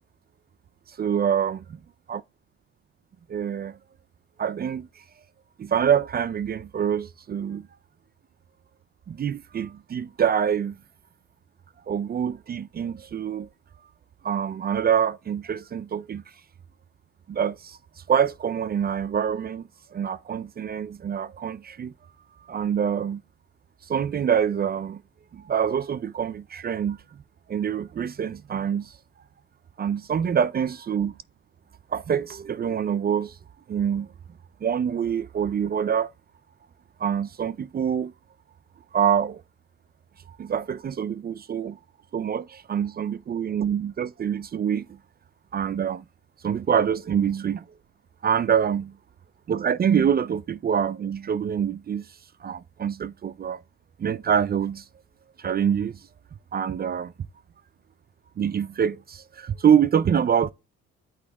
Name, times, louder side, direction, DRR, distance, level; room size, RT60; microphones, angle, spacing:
voice 1, 1.0-1.6 2.1-2.2 3.3-3.7 4.4-4.9 5.6-7.6 9.1-10.8 11.9-13.5 14.2-16.2 17.3-17.8 18.1-21.9 22.5-23.2 23.9-25.0 25.3-27.0 27.5-28.9 29.8-31.1 31.9-33.3 33.7-34.1 34.6-36.1 37.0-38.1 38.9-39.4 40.4-41.8 42.1-44.9 45.5-46.0 46.4-47.6 48.2-48.9 49.5-52.0 52.4-53.6 54.0-54.8 55.4-55.9 56.5-57.1 58.4-60.5, right 8 dB, 35° right, 0.4 m, -25 dB
8.4 x 3.1 x 4.7 m
cardioid pair, 90°, 30 cm